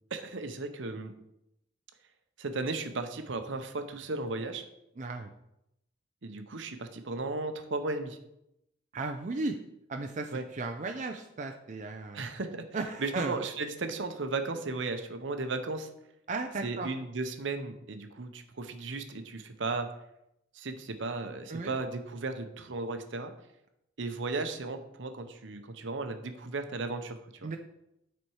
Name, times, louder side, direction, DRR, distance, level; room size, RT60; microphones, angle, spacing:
voice 1, 0.1-1.1 2.4-4.6 6.2-8.2 10.3-10.4 12.1-12.6 13.0-15.9 16.6-19.9 20.5-23.3 24.0-27.5, right 3 dB, 65° right, 7 dB, 0.8 m, -35 dB
voice 2, 5.0-5.3 8.9-9.6 9.9-12.3 12.7-13.4 16.3-16.9 21.5-21.7 27.4-27.6, right 3 dB, 40° right, 4 dB, 0.5 m, -35 dB
9.3 x 4.3 x 4.7 m, 0.83 s
head